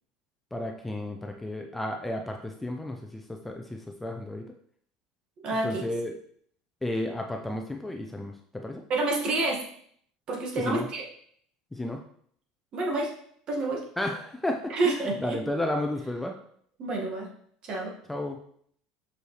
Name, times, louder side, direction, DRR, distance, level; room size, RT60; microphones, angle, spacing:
voice 1, 0.5-4.5 5.6-6.1 6.8-8.8 10.6-10.9 11.7-12.0 14.0-16.3 18.1-18.4, left 1 dB, 5° left, 3 dB, 0.5 m, -32 dB
voice 2, 5.4-5.8 8.9-9.6 10.3-11.0 12.7-13.1 13.5-13.8 14.7-15.4 16.8-17.3 17.7-17.9, right 2 dB, 40° right, -1 dB, 1.8 m, -28 dB
6.3 x 5.3 x 3.2 m, 0.63 s
supercardioid pair, 125°, 2 cm